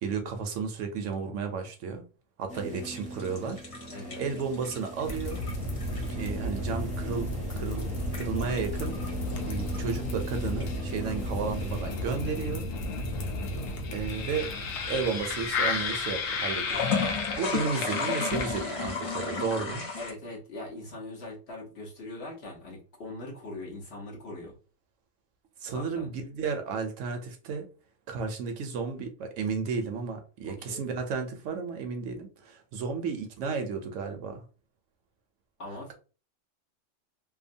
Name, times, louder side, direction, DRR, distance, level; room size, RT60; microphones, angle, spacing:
voice 1, 0.0-2.0 2.4-3.6 4.2-5.4 5.9-9.0 9.5-12.7 13.9-14.5 14.8-19.9 25.6-27.7 28.1-34.4, right 5 dB, 75° right, 0.9 m, -33 dB
voice 2, 2.5-2.9 3.9-4.3 20.0-24.5 25.7-26.1 30.5-30.9 35.6-35.9, left 2 dB, 55° left, 1.1 m, -41 dB
sound 1, 2.5-11.8, right 2 dB, 10° right, 0.5 m, -43 dB
sound 2, 2.8-6.4 7.8-9.8 10.4-11.3 16.6-20.1, left 5 dB, 40° left, 0.5 m, -33 dB
sound 3, 5.1-19.0, left 2 dB, 85° left, 1.0 m, -33 dB
2.8 x 2.2 x 2.6 m
omnidirectional pair, 1.3 m